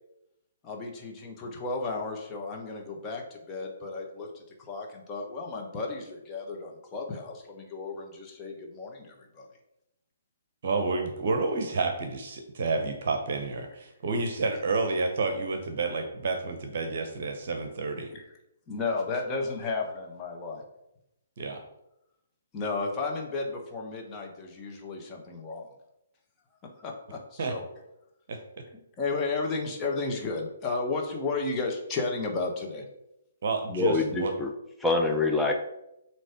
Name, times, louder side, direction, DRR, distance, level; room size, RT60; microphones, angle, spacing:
voice 1, 0.6-9.5 18.1-18.2 18.7-20.6 22.5-25.7 26.8-27.6 29.0-32.8, left 3 dB, 20° left, 0 dB, 1.3 m, -33 dB
voice 2, 10.6-18.1 21.4-21.6 27.4-27.5 28.3-28.4 33.4-34.3, right 3 dB, 50° right, 5 dB, 0.9 m, -30 dB
voice 3, 33.7-34.5 34.8-35.6, left 3 dB, 5° left, 1 dB, 0.8 m, -25 dB
7.7 x 3.1 x 5.0 m, 0.85 s
figure-of-eight pair, 125°, 0 cm